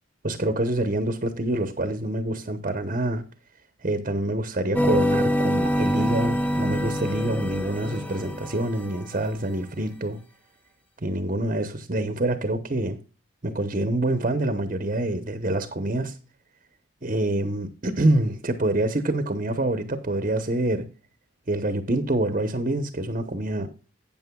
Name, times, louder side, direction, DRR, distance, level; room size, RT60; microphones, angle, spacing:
voice 1, 0.2-3.2 3.8-10.2 11.0-13.0 13.4-16.2 17.0-20.8 21.5-23.7, right 1 dB, 40° right, 0.9 m, -26 dB
sound 1, 4.7-9.0, equal, 10° left, 0.6 m, -25 dB
12.5 x 8.7 x 2.3 m
head